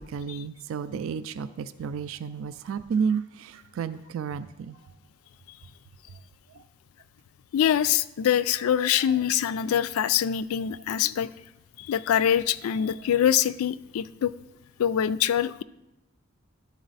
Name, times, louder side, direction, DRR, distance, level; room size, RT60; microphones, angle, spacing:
voice 1, 0.0-4.8 6.5-6.6 12.7-13.1, right 6 dB, 75° right, 13 dB, 0.3 m, -32 dB
voice 2, 7.5-11.3 11.8-14.3 14.8-15.6, left 9 dB, 85° left, 16 dB, 0.3 m, -24 dB
12.0 x 4.1 x 4.0 m, 0.93 s
head